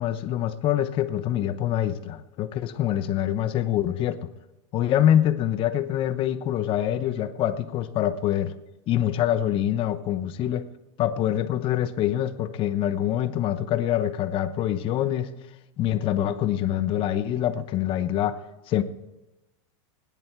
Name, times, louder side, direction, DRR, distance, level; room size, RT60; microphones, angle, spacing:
voice 1, 0.0-4.2 4.7-8.5 8.9-10.7 11.0-15.3 15.8-18.4 18.7-18.8, left 11 dB, 35° left, 0.9 m, -25 dB
18.0 x 10.5 x 4.6 m
supercardioid pair, 150°, 16 cm